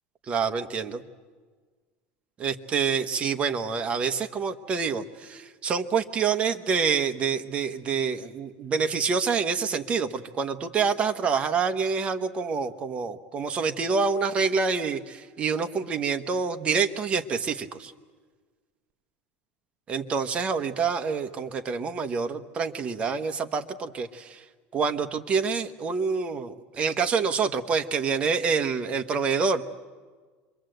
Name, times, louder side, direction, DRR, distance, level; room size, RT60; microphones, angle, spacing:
voice 1, 0.3-1.0 2.4-17.9 19.9-24.4 24.7-29.6, right 5 dB, 25° right, 6 dB, 1.1 m, -27 dB
27.5 x 23.5 x 7.9 m, 1.5 s
cardioid pair, 160°, 5 cm